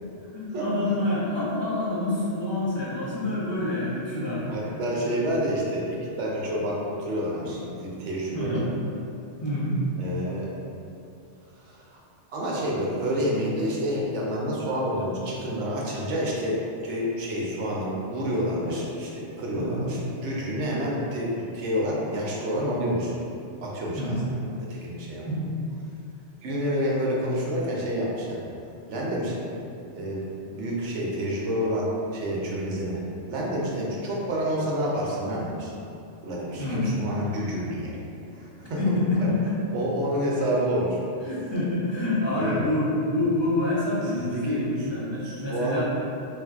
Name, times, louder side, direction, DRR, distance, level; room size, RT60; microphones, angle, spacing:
voice 1, 0.3-4.5 8.3-8.7 9.4-9.8 19.5-19.8 24.0-24.2 25.3-25.5 36.6-36.9 38.8-39.6 41.2-45.9, left 1 dB, 30° left, -10 dB, 0.6 m, -27 dB
voice 2, 4.5-8.7 10.0-10.5 11.7-11.8 12.3-23.1 23.6-24.4 24.7-25.2 26.4-28.4 28.9-29.3 29.9-30.2 30.5-33.0 33.3-35.7 36.2-37.9 38.6-38.8 39.2-39.3 39.7-41.1 42.4-42.6 44.1-44.6 45.2-45.8, equal, 80° right, -4 dB, 0.9 m, -28 dB
3.2 x 2.5 x 2.4 m, 2.7 s
omnidirectional pair, 1.2 m